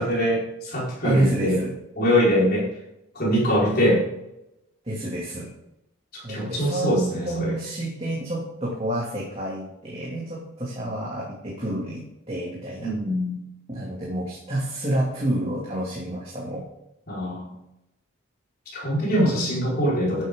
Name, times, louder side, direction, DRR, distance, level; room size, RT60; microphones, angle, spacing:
voice 1, 0.0-1.6 2.0-2.7 3.1-4.0 6.1-7.5 12.8-13.4 17.1-17.5 18.7-20.3, equal, 45° left, -5 dB, 4.8 m, -23 dB
voice 2, 1.0-1.7 4.8-5.5 6.2-12.9 13.7-16.6 19.3-19.6, right 1 dB, 30° right, -5 dB, 2.7 m, -29 dB
12.5 x 9.0 x 3.8 m, 0.84 s
head